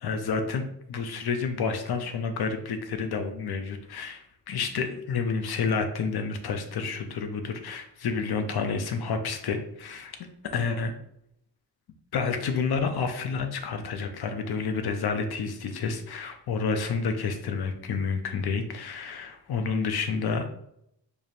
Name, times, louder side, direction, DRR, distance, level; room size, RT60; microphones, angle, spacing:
voice 1, 0.0-10.2 10.5-10.9 12.1-20.6, left 5 dB, 60° left, 7 dB, 0.6 m, -29 dB
4.8 x 2.7 x 2.5 m, 0.75 s
wide cardioid pair, 165°, 44 cm